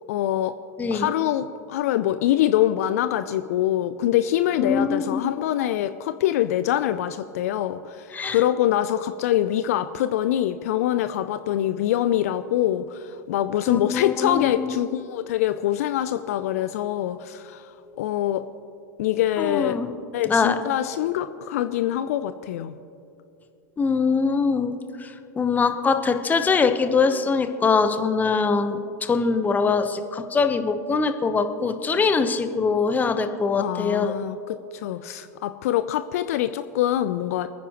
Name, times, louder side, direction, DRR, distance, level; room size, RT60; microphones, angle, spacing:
voice 1, 0.1-0.5 0.9-18.4 19.0-19.8 20.1-22.7 33.6-37.5, left 12 dB, 60° left, 11 dB, 0.5 m, -24 dB
voice 2, 0.8-1.1 4.6-5.2 8.1-8.4 13.7-14.7 19.4-19.9 20.2-20.6 23.8-34.2, left 5 dB, 20° left, 8 dB, 1.0 m, -23 dB
27.5 x 9.9 x 3.0 m, 2.6 s
figure-of-eight pair, 85°, 9 cm